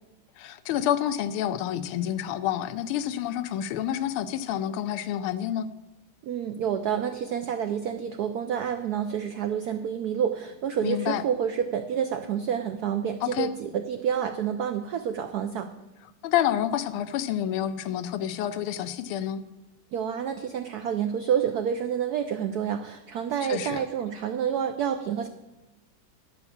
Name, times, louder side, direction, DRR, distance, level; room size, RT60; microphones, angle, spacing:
voice 1, 0.4-5.7 10.8-11.2 13.2-13.5 16.2-19.4 23.5-23.8, left 11 dB, 85° left, 12 dB, 1.5 m, -28 dB
voice 2, 6.2-15.7 19.9-25.3, right 8 dB, 85° right, 8 dB, 0.8 m, -28 dB
10.5 x 6.0 x 7.0 m, 1.0 s
omnidirectional pair, 2.3 m